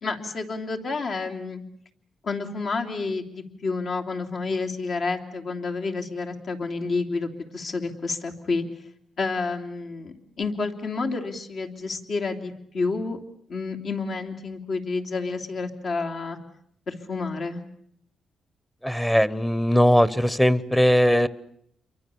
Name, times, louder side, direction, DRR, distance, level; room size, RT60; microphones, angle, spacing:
voice 1, 0.0-1.6 2.2-8.6 9.2-13.2 13.5-16.4 16.9-17.6, left 3 dB, 60° left, 3 dB, 3.1 m, -29 dB
voice 2, 18.8-21.3, equal, 5° left, 18 dB, 1.1 m, -19 dB
29.0 x 23.5 x 7.1 m, 0.71 s
cardioid pair, 75°, 0 cm